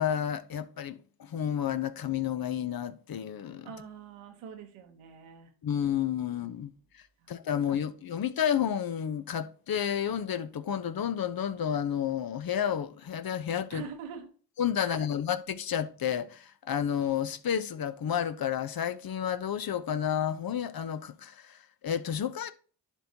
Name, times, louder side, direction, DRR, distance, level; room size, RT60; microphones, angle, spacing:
voice 1, 0.0-3.7 5.6-13.8 14.6-22.5, left 9 dB, 50° left, 0.8 m, -31 dB
voice 2, 3.6-5.5 7.2-7.3 13.7-14.3 14.8-15.1, right 7 dB, 90° right, 1.1 m, -44 dB
11.0 x 4.5 x 2.8 m
supercardioid pair, 45°, 48 cm